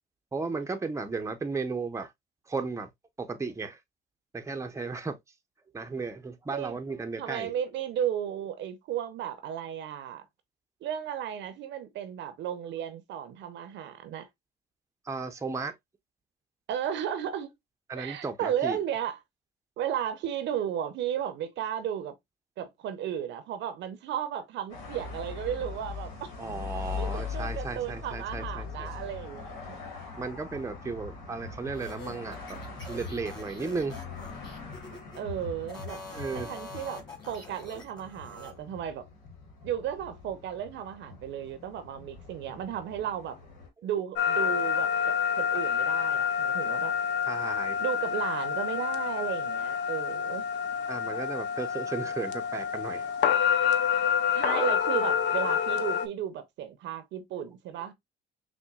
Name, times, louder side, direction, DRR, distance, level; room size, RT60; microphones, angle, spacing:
voice 1, 0.3-2.1 2.5-2.9 3.2-3.8 4.3-5.2 5.7-7.5 15.1-15.7 17.9-18.8 26.4-28.9 30.2-32.6 32.9-34.0 36.1-36.5 47.3-47.8 50.9-53.2, right 4 dB, 15° right, 0.6 m, -35 dB
voice 2, 7.2-10.2 10.8-14.3 16.7-17.5 18.0-19.2 19.8-22.1 22.6-26.3 26.9-29.8 35.1-36.0 36.3-39.1 39.6-43.4 43.8-46.9 47.8-50.4 54.3-57.9, right 9 dB, 65° right, 0.7 m, -34 dB
sound 1, 24.7-43.7, left 5 dB, 80° left, 1.2 m, -41 dB
sound 2, 31.7-35.2 35.6-38.5, left 2 dB, 20° left, 2.1 m, -45 dB
sound 3, 44.2-56.1, left 8 dB, 60° left, 0.6 m, -28 dB
6.0 x 2.2 x 2.3 m
hypercardioid pair, 65°, 21 cm